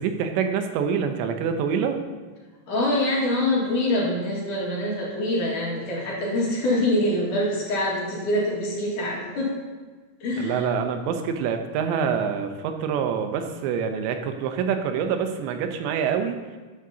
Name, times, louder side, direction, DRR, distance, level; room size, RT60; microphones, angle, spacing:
voice 1, 0.0-2.0 10.4-16.4, right 7 dB, 85° right, 6 dB, 3.1 m, -26 dB
voice 2, 2.7-9.5 10.2-10.7, left 1 dB, 55° left, -4 dB, 3.0 m, -25 dB
13.5 x 9.9 x 2.8 m, 1.4 s
omnidirectional pair, 5.1 m